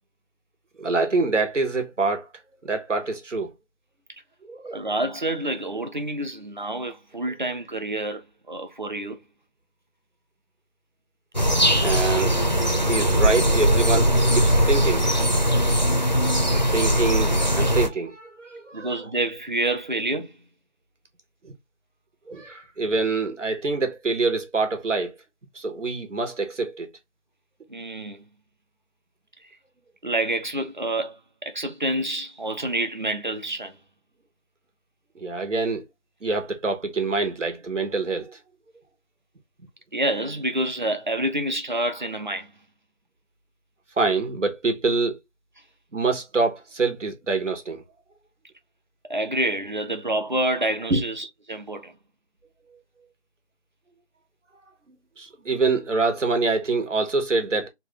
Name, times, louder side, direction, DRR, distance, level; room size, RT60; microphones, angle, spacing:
voice 1, 0.8-2.3 2.6-3.5 4.5-4.8 11.8-12.4 12.8-15.2 16.5-18.9 21.4-21.5 22.3-25.1 25.5-26.9 35.1-35.8 36.2-38.4 44.0-45.2 45.9-47.8 50.9-51.0 54.9-57.7, right 3 dB, 90° right, 1.4 m, -25 dB
voice 2, 4.7-9.2 18.7-20.4 27.7-28.2 30.0-31.2 31.4-33.8 39.9-42.5 49.1-51.9, right 1 dB, 40° right, 0.6 m, -28 dB
sound 1, 11.3-17.9, equal, 40° left, 0.4 m, -20 dB
3.1 x 2.6 x 3.1 m
figure-of-eight pair, 175°, 36 cm